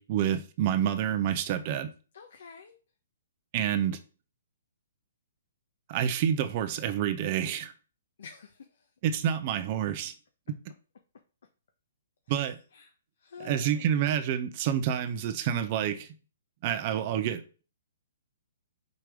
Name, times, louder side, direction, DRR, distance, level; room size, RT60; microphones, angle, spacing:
voice 1, 0.0-1.9 3.5-4.0 5.9-7.7 9.0-10.1 12.3-12.6 13.4-16.1 16.6-17.6, right 9 dB, 40° right, 0.9 m, -28 dB
voice 2, 2.1-2.8 8.2-8.9 12.3-12.9 13.2-13.9, left 6 dB, 70° left, 1.1 m, -48 dB
5.4 x 4.6 x 4.9 m
hypercardioid pair, 135°, 0 cm